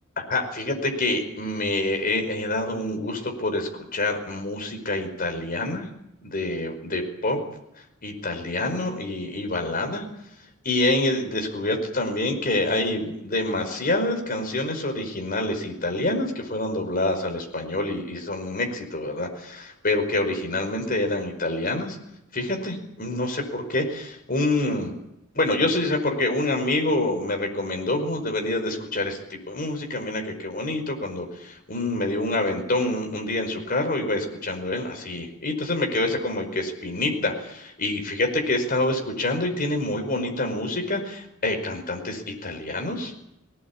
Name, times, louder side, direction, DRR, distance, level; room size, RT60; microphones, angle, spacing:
voice 1, 0.3-5.9 6.2-7.4 8.0-10.0 10.6-22.0 22.3-24.9 25.3-43.1, left 2 dB, 45° left, 4 dB, 5.1 m, -27 dB
21.0 x 18.0 x 8.6 m, 0.82 s
head